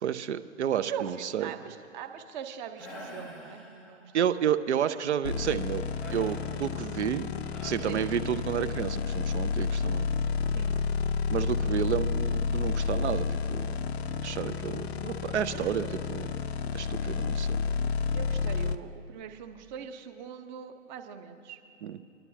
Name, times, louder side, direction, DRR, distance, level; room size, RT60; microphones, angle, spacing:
voice 1, 0.0-1.5 4.1-5.8 6.1-7.3 7.6-10.1 11.3-13.7 14.2-16.4 16.7-17.6 21.8-22.0, right 9 dB, 60° right, 13 dB, 0.7 m, -30 dB
voice 2, 0.9-4.3 7.8-8.0 10.5-10.8 15.5-16.0 18.1-21.6, right 8 dB, 35° right, 7 dB, 1.0 m, -42 dB
sound 1, 2.8-4.3 6.0-8.7, equal, ahead, 0.4 m, -47 dB
sound 2, 5.2-18.8, left 5 dB, 55° left, 0.6 m, -30 dB
24.0 x 12.0 x 2.8 m, 2.8 s
figure-of-eight pair, 115°, 39 cm